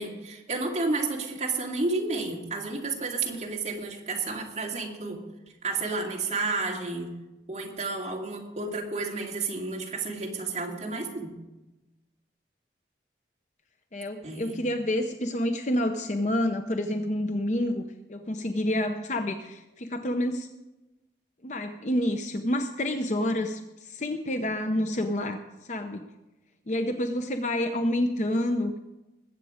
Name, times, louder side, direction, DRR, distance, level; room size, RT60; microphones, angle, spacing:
voice 1, 0.0-5.2 5.6-7.1 7.5-11.4 14.2-14.6, right 3 dB, 40° right, -2 dB, 2.4 m, -31 dB
voice 2, 13.9-20.5 21.4-26.1 26.7-28.7, left 1 dB, 40° left, 6 dB, 0.7 m, -28 dB
20.5 x 8.2 x 5.0 m, 1.0 s
head